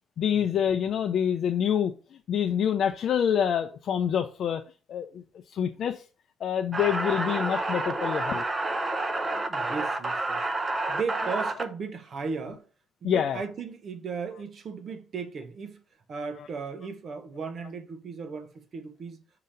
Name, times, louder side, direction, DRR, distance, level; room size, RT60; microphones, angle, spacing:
voice 1, 0.2-1.9 2.3-4.6 4.9-5.2 5.5-6.0 6.4-8.4 10.9-11.0 13.0-13.4, left 8 dB, 65° left, 0.5 m, -26 dB
sound 1, 6.7-11.6, right 2 dB, 25° right, 0.8 m, -29 dB
voice 2, 9.5-10.4 10.9-12.6 13.0-15.8 16.1-19.2, right 5 dB, 55° right, 0.9 m, -36 dB
6.7 x 2.9 x 5.1 m
cardioid pair, 90°, 0 cm